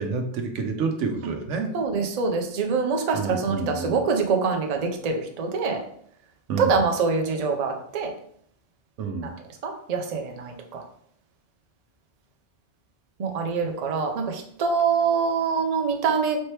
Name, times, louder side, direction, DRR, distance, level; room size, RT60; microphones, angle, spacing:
voice 1, 0.0-1.7 3.1-4.0 6.5-6.8 9.0-9.3, right 4 dB, 85° right, 5 dB, 1.0 m, -28 dB
voice 2, 1.7-5.8 6.6-8.1 9.2-9.3 9.6-10.8 13.2-16.4, right 5 dB, 45° right, 3 dB, 0.5 m, -25 dB
4.4 x 2.9 x 3.2 m, 0.66 s
omnidirectional pair, 1.2 m